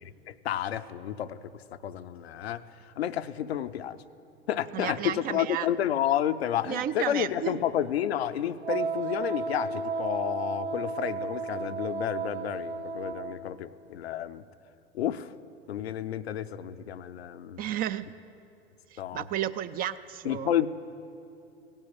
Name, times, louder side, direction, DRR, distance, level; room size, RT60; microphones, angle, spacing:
voice 1, 0.0-4.0 4.5-14.4 14.9-15.3 15.7-17.6 19.0-19.3 20.2-20.7, left 10 dB, 75° left, 11 dB, 0.6 m, -31 dB
voice 2, 4.7-5.7 6.7-7.5 17.6-18.1 18.9-20.5, right 11 dB, 30° right, 14 dB, 0.4 m, -32 dB
Wind instrument woodwind instrument, 8.6-13.4, right 4 dB, 85° right, 1.0 m, -33 dB
16.5 x 8.9 x 8.3 m, 2.7 s
figure-of-eight pair, 90°, 32 cm